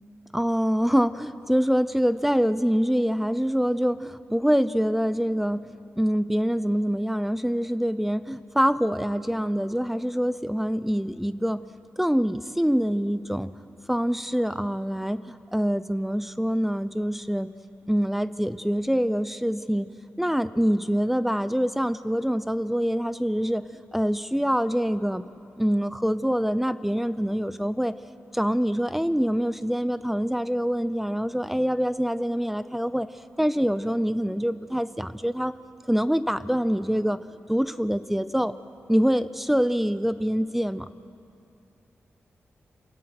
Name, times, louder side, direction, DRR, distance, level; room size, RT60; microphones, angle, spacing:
voice 1, 0.3-11.6 12.0-13.5 13.9-17.5 17.9-19.9 20.2-23.7 23.9-25.2 25.6-27.9 28.3-33.1 33.4-35.5 35.9-37.2 37.5-38.5 38.9-40.9, equal, 5° right, 14 dB, 0.6 m, -25 dB
27.5 x 17.0 x 6.0 m, 2.5 s
cardioid pair, 75°, 5 cm